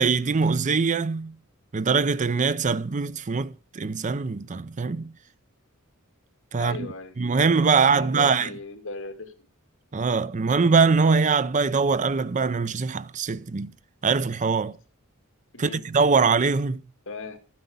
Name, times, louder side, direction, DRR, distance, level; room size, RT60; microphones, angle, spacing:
voice 1, 0.0-1.3 1.7-5.1 6.5-6.9 7.2-8.5 9.9-13.7 14.0-14.8 15.6-16.8, right 5 dB, 35° right, 0.5 m, -22 dB
voice 2, 6.6-7.2 7.9-9.3 15.5-15.8 17.1-17.4, left 3 dB, 65° left, 2.5 m, -37 dB
13.0 x 9.4 x 5.3 m
head